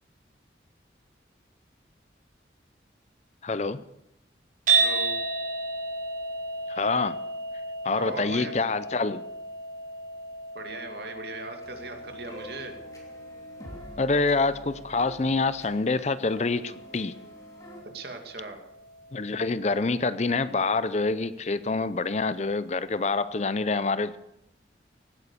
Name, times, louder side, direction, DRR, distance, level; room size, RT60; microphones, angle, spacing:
voice 1, 3.4-3.8 6.7-7.2 7.8-9.2 14.0-17.2 19.1-24.2, left 3 dB, 40° left, 14 dB, 0.5 m, -26 dB
sound 1, 4.7-20.9, right 4 dB, 45° right, 5.2 m, -34 dB
voice 2, 4.8-5.1 7.9-8.5 10.5-12.8 17.8-18.6, right 2 dB, 65° right, 4 dB, 2.4 m, -39 dB
sound 2, 11.6-17.8, equal, 20° left, 2.9 m, -48 dB
17.0 x 9.2 x 6.8 m, 0.83 s
head